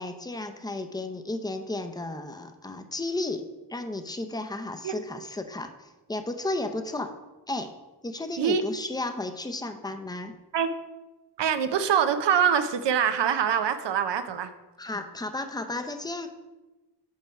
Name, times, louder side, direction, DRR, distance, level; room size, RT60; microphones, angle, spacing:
voice 1, 0.0-3.4 3.7-7.1 7.5-7.7 8.0-10.4 14.8-16.3, left 2 dB, 10° left, 7 dB, 0.6 m, -33 dB
voice 2, 11.4-14.5, right 8 dB, 75° right, 10 dB, 0.7 m, -24 dB
5.6 x 4.4 x 5.9 m, 1.1 s
cardioid pair, 60°, 42 cm